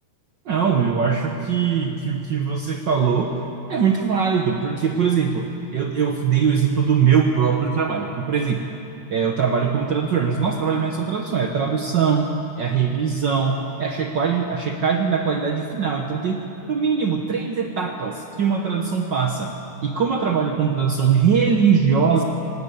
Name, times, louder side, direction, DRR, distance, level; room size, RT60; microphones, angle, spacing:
voice 1, 0.4-3.3 3.7-5.5 5.7-8.6 9.1-12.3 12.6-16.4 16.7-19.5 19.8-22.2, right 6 dB, 75° right, 3 dB, 1.0 m, -21 dB
18.5 x 18.0 x 8.3 m, 2.7 s
omnidirectional pair, 3.6 m